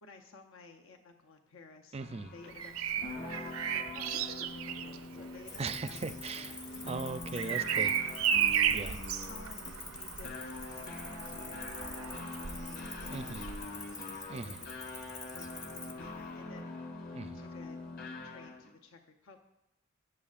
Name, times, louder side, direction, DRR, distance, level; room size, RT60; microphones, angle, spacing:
voice 1, 0.0-2.0 2.3-3.0 3.3-6.0 6.4-7.0 7.3-7.7 8.7-9.6 9.9-10.3 10.7-13.9 14.3-14.7 15.2-16.9 17.3-17.8 18.2-19.4, left 3 dB, 75° left, 4 dB, 0.8 m, -54 dB
voice 2, 1.9-2.3 5.6-7.9 8.7-8.9 13.1-13.5 14.3-14.7 17.1-17.4, right 4 dB, 30° right, 11 dB, 0.4 m, -39 dB
sound 1, 2.0-18.7, left 2 dB, 45° left, 1.2 m, -44 dB
Bird vocalization bird call bird song, 2.5-14.3 16.0-16.2, right 9 dB, 90° right, 0.5 m, -35 dB
Cricket, 5.5-15.9, left 3 dB, 15° left, 0.7 m, -47 dB
21.5 x 7.3 x 2.5 m, 0.92 s
head